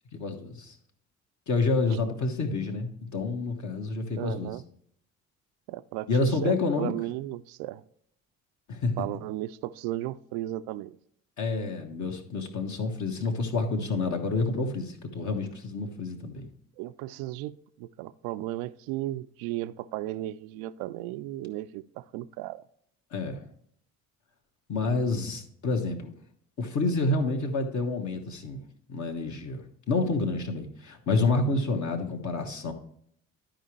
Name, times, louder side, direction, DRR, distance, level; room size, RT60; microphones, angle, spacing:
voice 1, 0.1-0.8 1.5-4.5 6.1-6.9 8.7-9.0 11.4-16.5 23.1-23.4 24.7-26.1 26.6-28.6 28.9-29.6 29.9-32.7, left 3 dB, 45° left, 3 dB, 1.5 m, -28 dB
voice 2, 4.2-4.6 5.7-7.8 9.0-11.0 16.8-22.6, right 15 dB, 60° right, 16 dB, 0.5 m, -35 dB
12.0 x 5.0 x 3.1 m, 0.67 s
hypercardioid pair, 55°, 41 cm